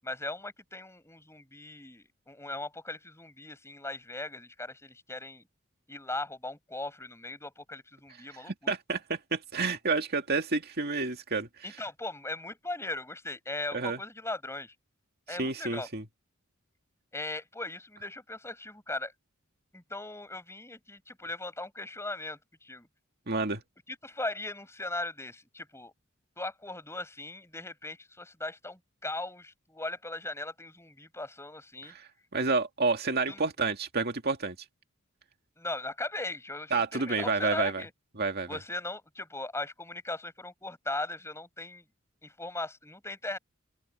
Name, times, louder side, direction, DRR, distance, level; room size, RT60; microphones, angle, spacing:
voice 1, 0.0-5.4 5.9-8.7 11.6-14.7 15.3-15.9 17.1-19.1 19.7-22.9 23.9-25.9 26.4-31.9 33.3-33.4 35.6-37.9 38.5-41.8 42.2-43.4, left 2 dB, 15° left, 7.9 m, -38 dB
voice 2, 8.5-11.5 13.7-14.0 15.3-16.0 23.3-23.6 31.9-34.6 36.7-37.8 38.2-38.6, right 4 dB, 50° right, 2.2 m, -29 dB
open air
head